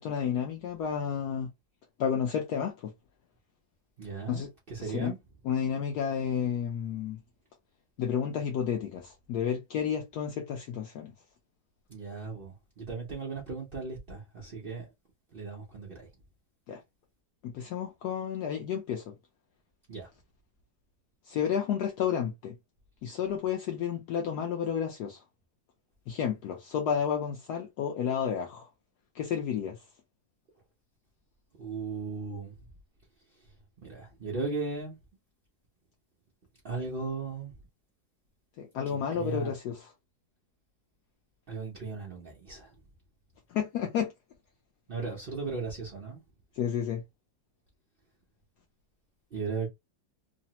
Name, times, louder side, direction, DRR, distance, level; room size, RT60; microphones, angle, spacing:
voice 1, 0.0-1.5 2.0-2.9 4.3-4.5 4.8-5.1 5.4-7.2 8.0-11.1 16.7-16.8 17.4-19.1 21.3-22.5 23.0-25.2 26.1-28.7 29.1-29.8 38.6-39.8 43.5-44.1 46.6-47.0, left 8 dB, 70° left, 1.0 m, -31 dB
voice 2, 4.0-5.2 11.9-14.9 15.3-16.1 19.9-20.1 31.6-32.5 33.8-34.9 36.6-37.5 38.9-39.6 41.5-42.7 44.9-46.2 49.3-49.7, right 4 dB, 85° right, 0.4 m, -37 dB
3.1 x 2.0 x 2.8 m
omnidirectional pair, 2.0 m